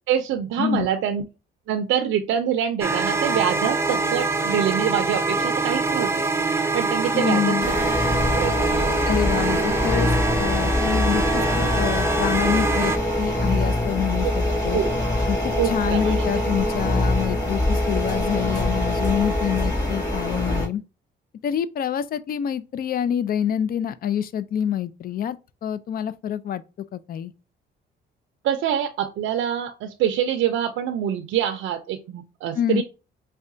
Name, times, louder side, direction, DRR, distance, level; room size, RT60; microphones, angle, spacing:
voice 1, 0.1-1.2 1.7-6.3 6.5-7.6 8.3-9.0 14.7-14.9 15.6-16.3 28.4-32.8, right 9 dB, 80° right, 0.5 m, -25 dB
sound 1, 2.8-13.0, right 3 dB, 15° right, 0.4 m, -24 dB
voice 2, 7.1-7.7 9.1-10.1 10.4-12.9 13.2-14.8 15.3-20.8 21.4-26.6 26.9-27.3 32.5-32.8, left 9 dB, 50° left, 0.4 m, -26 dB
sound 2, 7.6-20.6, left 1 dB, 20° left, 1.9 m, -24 dB
4.7 x 2.2 x 2.5 m
cardioid pair, 90°, 20 cm